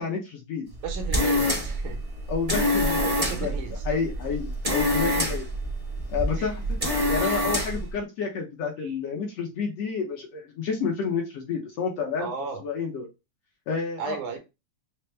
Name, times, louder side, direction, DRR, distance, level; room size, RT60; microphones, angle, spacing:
voice 1, 0.0-0.7 2.3-3.1 3.4-3.5 3.8-5.4 6.1-6.8 7.1-12.3 12.6-13.0 13.7-14.4, left 5 dB, 70° left, 1.7 m, -30 dB
sound 1, 0.7-7.9, left 1 dB, 40° right, 0.5 m, -26 dB
voice 2, 0.8-2.0 3.0-4.0 5.0-5.4 6.4-6.5 7.1-7.7 8.8-9.0 12.2-12.6 14.0-14.4, right 6 dB, 75° right, 2.3 m, -36 dB
5.9 x 2.1 x 3.2 m
omnidirectional pair, 3.5 m